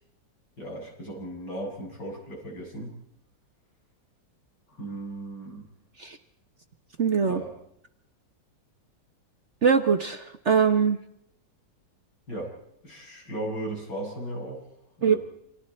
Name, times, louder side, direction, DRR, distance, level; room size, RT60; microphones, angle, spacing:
voice 1, 0.6-2.9 4.8-5.7 7.2-7.5 12.3-12.5 12.8-14.6 15.0-15.2, right 1 dB, 70° left, -1 dB, 8.5 m, -36 dB
voice 2, 7.0-7.4 9.6-11.0 15.0-15.1, right 6 dB, 45° right, 7 dB, 1.2 m, -22 dB
29.5 x 26.0 x 4.4 m, 0.76 s
omnidirectional pair, 2.0 m